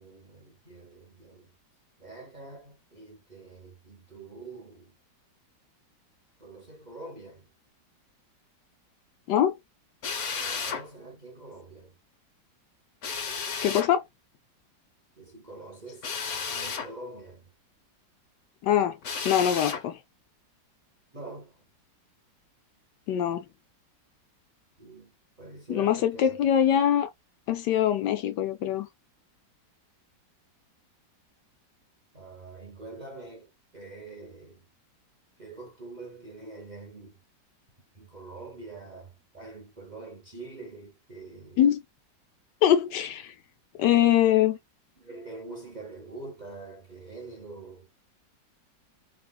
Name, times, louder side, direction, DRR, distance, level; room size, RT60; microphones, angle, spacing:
voice 1, 0.0-1.5 2.0-5.0 6.4-7.5 10.5-11.9 15.2-17.5 21.1-21.7 24.8-26.4 32.1-34.6 35.4-37.2 37.9-41.6 44.3-44.4 45.0-47.9, right 3 dB, 35° right, 0.8 m, -45 dB
Drill, 10.0-10.8 13.0-13.9 16.0-16.9 19.0-19.8, left 5 dB, 55° left, 0.9 m, -33 dB
voice 2, 13.6-14.0 18.6-19.0 19.2-20.0 23.1-23.5 25.7-27.1 27.5-28.9 41.6-41.8 42.6-43.3 43.8-44.6, left 10 dB, 75° left, 1.2 m, -23 dB
3.8 x 2.4 x 2.2 m
omnidirectional pair, 2.0 m